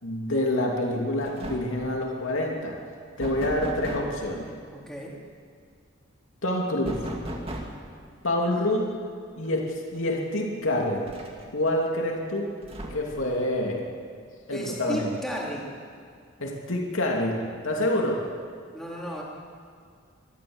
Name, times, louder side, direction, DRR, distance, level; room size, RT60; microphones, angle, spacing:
voice 1, 0.0-2.8 3.2-4.5 6.4-7.0 8.2-8.9 9.4-11.1 11.5-12.5 12.9-13.8 14.5-15.1 16.4-18.2, left 1 dB, 85° left, -1 dB, 2.8 m, -27 dB
sound 1, 0.8-1.0 1.2-1.9 3.2-4.2 6.8-7.9 9.5-9.6 10.0-10.1 11.0-11.7 12.6-13.3, right 1 dB, 30° right, 2.3 m, -36 dB
voice 2, 4.7-5.1 14.5-15.7 18.7-19.2, equal, ahead, -4 dB, 3.7 m, -34 dB
25.5 x 13.5 x 8.0 m, 2.1 s
head